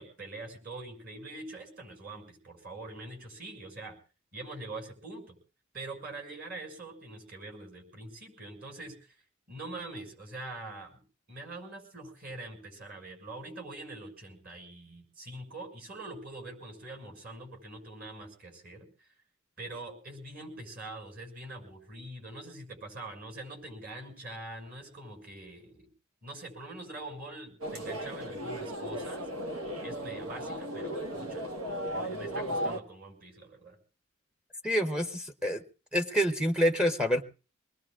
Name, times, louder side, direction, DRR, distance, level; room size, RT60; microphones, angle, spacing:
voice 1, 0.0-4.0 4.3-5.4 5.7-9.2 9.5-11.0 11.3-19.1 19.6-25.9 26.2-29.3 29.8-31.5 31.9-33.8, right 2 dB, 45° right, 2 dB, 6.1 m, -44 dB
sound 1, 27.6-32.8, equal, 85° right, 1.6 m, -36 dB
voice 2, 34.6-35.6 35.9-37.2, equal, 5° right, 7 dB, 0.8 m, -27 dB
24.5 x 20.0 x 2.4 m, 0.36 s
head